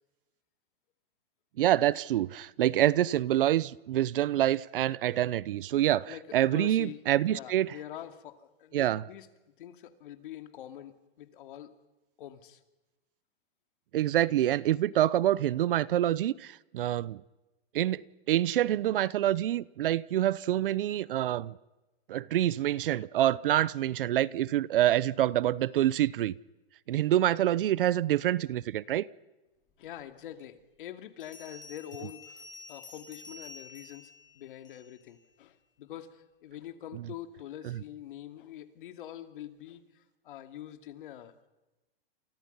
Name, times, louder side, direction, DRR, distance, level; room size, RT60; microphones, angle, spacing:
voice 1, 1.6-7.7 8.7-9.0 13.9-17.2 17.7-18.0 18.3-21.6 22.1-26.3 26.9-29.1, right 13 dB, 60° right, 0.8 m, -26 dB
voice 2, 6.1-7.0 7.3-9.3 9.6-11.7 12.2-12.6 29.8-41.5, left 11 dB, 55° left, 2.6 m, -45 dB
Bell, 31.2-35.1, left 3 dB, 15° left, 6.3 m, -50 dB
30.0 x 27.5 x 5.6 m
supercardioid pair, 165°, 30 cm